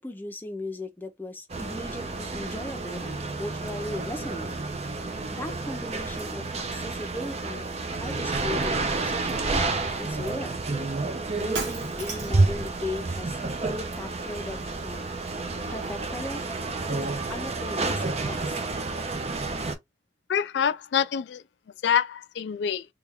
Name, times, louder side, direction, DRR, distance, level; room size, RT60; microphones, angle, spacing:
voice 1, 0.0-4.6 5.3-6.4 6.7-7.6 8.0-10.6 11.4-15.1 15.7-16.4 16.9-18.6, left 1 dB, 10° left, 0.6 m, -37 dB
sound 1, 1.5-19.7, right 3 dB, 35° right, 0.5 m, -30 dB
Shatter, 11.5-12.5, right 4 dB, 65° right, 1.2 m, -34 dB
voice 2, 20.3-21.4 21.8-22.9, left 8 dB, 65° left, 0.3 m, -26 dB
3.3 x 2.3 x 3.5 m
head